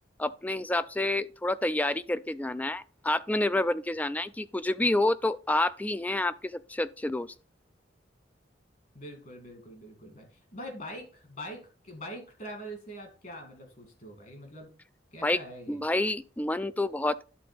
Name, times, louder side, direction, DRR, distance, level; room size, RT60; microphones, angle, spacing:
voice 1, 0.2-7.3 15.2-15.4 15.7-17.2, left 2 dB, 10° left, 0.3 m, -28 dB
voice 2, 8.9-10.3 10.5-14.7 15.1-15.8, equal, 45° left, 2.4 m, -43 dB
11.0 x 3.8 x 5.2 m
head